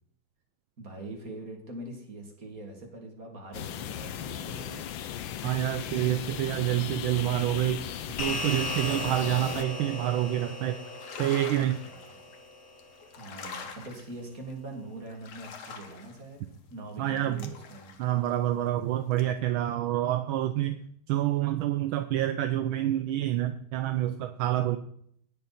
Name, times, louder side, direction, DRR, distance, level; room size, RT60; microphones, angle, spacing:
voice 1, 0.8-4.9 11.8-12.3 13.1-16.4 16.7-17.9, right 2 dB, 40° right, 1 dB, 3.1 m, -43 dB
sound 1, 3.5-9.6, left 10 dB, 70° left, 1.5 m, -37 dB
voice 2, 5.4-7.9 8.2-10.8 11.2-11.8 17.0-17.5 18.0-20.8 21.1-24.8, right 13 dB, 75° right, 9 dB, 1.5 m, -27 dB
sound 2, 8.2-12.8, left 2 dB, 50° left, 2.7 m, -37 dB
sound 3, 10.7-12.4 12.8-14.5 15.1-18.8 19.1-19.2, left 5 dB, 90° left, 2.2 m, -44 dB
18.5 x 6.6 x 4.3 m, 0.64 s
omnidirectional pair, 2.3 m